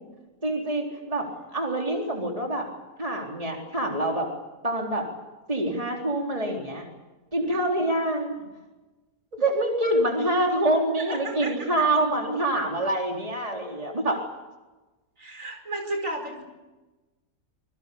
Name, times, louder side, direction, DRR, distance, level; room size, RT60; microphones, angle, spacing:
voice 1, 0.4-2.7 3.0-4.3 4.6-5.1 5.5-6.8 7.3-8.4 9.3-14.2, right 1 dB, 25° right, 1 dB, 4.0 m, -26 dB
voice 2, 11.1-12.2 15.2-16.4, right 2 dB, 65° right, 4 dB, 5.5 m, -34 dB
27.5 x 23.0 x 7.1 m, 1.1 s
omnidirectional pair, 1.5 m